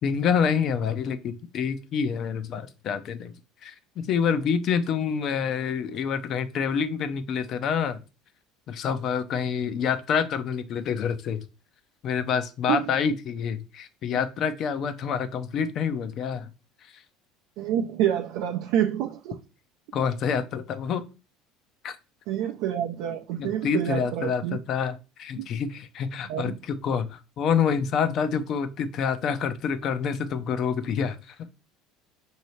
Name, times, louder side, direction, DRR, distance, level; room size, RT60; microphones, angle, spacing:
voice 1, 0.0-3.3 3.6-8.0 8.7-11.5 12.0-16.5 16.9-17.0 19.9-21.0 21.8-22.0 23.4-31.3, left 7 dB, 50° left, 0.6 m, -27 dB
voice 2, 17.6-19.4 22.3-24.6 25.3-25.5 26.3-26.6, right 10 dB, 70° right, 0.4 m, -27 dB
5.5 x 2.7 x 3.1 m
supercardioid pair, 110°, 0 cm